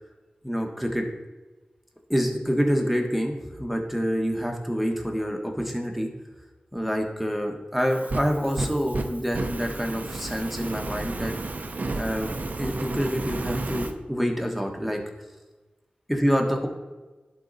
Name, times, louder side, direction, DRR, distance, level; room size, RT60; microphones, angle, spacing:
voice 1, 0.4-1.1 2.1-6.1 6.7-11.3 11.9-12.3 12.6-15.0 16.1-16.7, equal, ahead, 2 dB, 1.3 m, -27 dB
Fire, 7.8-13.9, right 2 dB, 55° right, 0.7 m, -32 dB
11.0 x 3.9 x 4.1 m, 1.2 s
wide cardioid pair, 60°, 3 cm